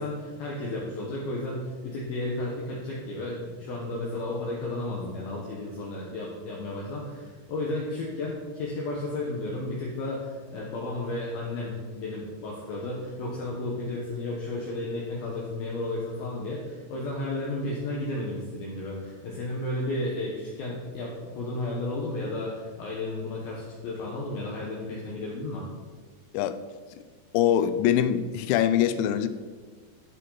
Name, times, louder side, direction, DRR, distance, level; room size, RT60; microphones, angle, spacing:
voice 1, 0.0-25.7, left 2 dB, 65° left, -4 dB, 2.7 m, -33 dB
voice 2, 27.3-29.3, left 10 dB, 90° left, 11 dB, 2.9 m, -23 dB
15.5 x 5.4 x 3.9 m, 1.4 s
omnidirectional pair, 5.1 m